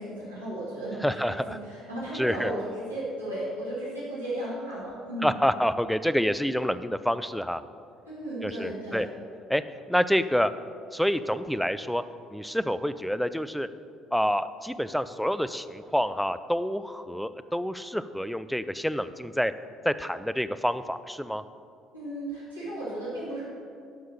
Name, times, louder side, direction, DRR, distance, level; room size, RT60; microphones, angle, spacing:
voice 1, 0.0-1.4 1.6-5.3 8.1-9.1 21.9-23.4, right 1 dB, 90° right, -11 dB, 2.8 m, -35 dB
voice 2, 1.0-1.6 2.1-2.5 5.2-7.6 8.4-9.1 9.5-9.6 9.9-10.5 10.9-12.0 12.3-13.7 14.1-19.5 19.8-21.4, equal, ahead, 13 dB, 0.5 m, -27 dB
11.0 x 5.6 x 6.7 m, 2.3 s
figure-of-eight pair, 50°, 0 cm